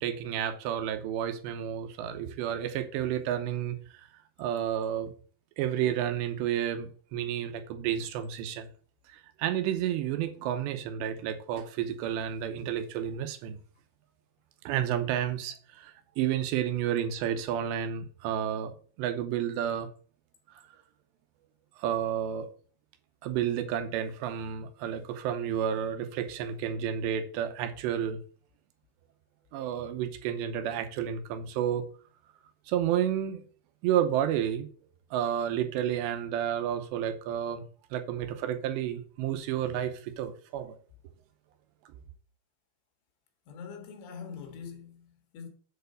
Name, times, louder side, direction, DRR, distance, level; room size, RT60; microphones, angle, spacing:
voice 1, 0.0-3.8 4.4-5.1 5.6-8.7 9.1-13.6 14.7-18.7 19.0-19.9 21.8-22.5 23.2-28.2 29.5-31.9 32.7-33.4 33.8-34.7 35.1-37.6 37.9-40.8, right 10 dB, 85° right, 3.1 m, -31 dB
voice 2, 43.5-45.5, left 6 dB, 75° left, 3.5 m, -43 dB
7.9 x 4.6 x 6.5 m
omnidirectional pair, 5.1 m